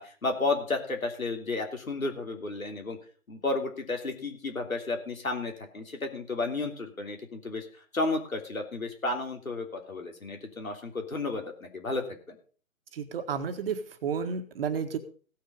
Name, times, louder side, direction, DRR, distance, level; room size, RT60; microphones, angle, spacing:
voice 1, 0.0-3.0 3.3-12.3, left 3 dB, 85° left, 4 dB, 3.2 m, -32 dB
voice 2, 12.9-15.0, right 6 dB, 45° right, 7 dB, 1.7 m, -32 dB
16.5 x 6.6 x 5.3 m, 0.41 s
figure-of-eight pair, 140°, 40 cm